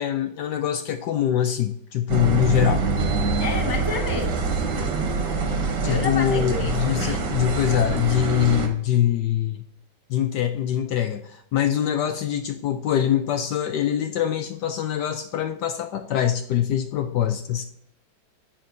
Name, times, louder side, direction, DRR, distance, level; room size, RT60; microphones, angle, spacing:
voice 1, 0.0-2.8 5.8-9.6 10.1-17.6, left 10 dB, 70° left, 8 dB, 1.0 m, -24 dB
sound 1, 2.1-8.7, right 4 dB, 60° right, 1.8 m, -25 dB
voice 2, 3.4-4.4 5.8-7.2, left 2 dB, 25° right, 1 dB, 0.4 m, -30 dB
11.5 x 7.5 x 2.6 m, 0.75 s
omnidirectional pair, 2.2 m